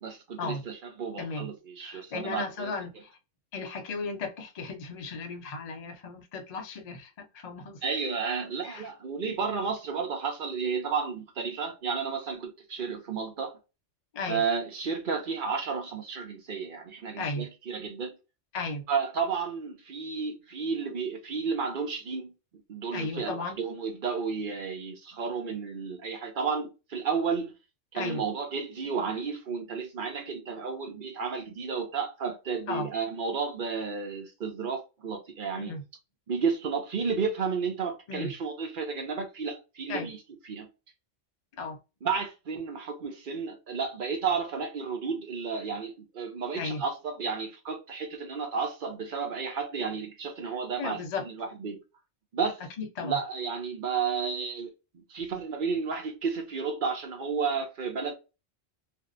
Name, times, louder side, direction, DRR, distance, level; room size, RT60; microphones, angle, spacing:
voice 1, 0.0-2.7 7.8-13.6 14.3-18.1 18.9-22.3 22.7-27.6 27.9-35.7 36.3-40.2 40.5-40.7 42.0-51.0 51.3-51.8 52.3-52.6 53.0-58.1, right 5 dB, 55° right, 0.7 m, -32 dB
voice 2, 1.2-1.5 1.8-3.2 3.5-7.8 8.6-8.9 14.1-14.4 17.2-17.5 18.5-18.8 22.9-23.6 27.9-28.2 32.7-32.9 35.5-35.8 38.1-38.3 39.9-40.1 41.6-41.8 46.5-46.8 50.4-50.5 50.8-51.2 52.8-53.2, left 3 dB, 50° left, 0.4 m, -35 dB
2.6 x 2.0 x 2.3 m
omnidirectional pair, 1.3 m